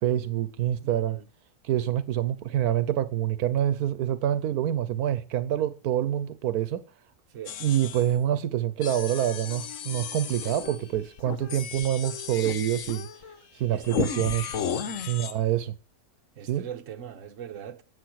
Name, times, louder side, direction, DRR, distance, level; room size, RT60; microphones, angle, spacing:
voice 1, 0.0-1.2 1.6-6.8 7.6-13.1 13.5-14.5 15.1-15.7 16.5-16.7, right 11 dB, 85° right, 1.3 m, -26 dB
voice 2, 0.8-1.2 7.3-7.6 13.7-14.1 14.9-15.0 16.4-17.8, right 9 dB, 60° right, 1.4 m, -40 dB
sound 1, 7.5-8.2 8.8-10.9 11.5-13.2 13.8-15.4, left 8 dB, 80° left, 1.4 m, -38 dB
sound 2, 10.3-13.4 13.8-15.1, left 6 dB, 60° left, 1.5 m, -33 dB
11.5 x 8.4 x 6.2 m
omnidirectional pair, 1.6 m